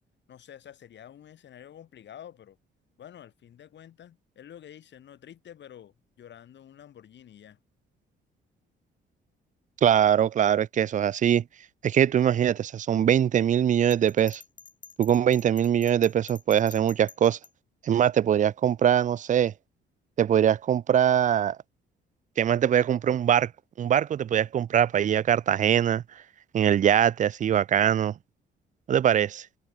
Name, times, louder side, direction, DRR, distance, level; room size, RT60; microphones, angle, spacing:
voice 1, 0.3-2.6 3.0-7.6, left 10 dB, 65° left, 3.7 m, -49 dB
voice 2, 9.8-11.4 11.8-14.4 15.0-17.4 17.8-19.5 20.2-21.6 22.4-23.5 23.8-26.0 26.5-28.1 28.9-29.5, right 9 dB, 40° right, 0.4 m, -22 dB
Bell, 13.9-17.5, left 6 dB, 40° left, 2.4 m, -48 dB
cardioid pair, 90°, 20 cm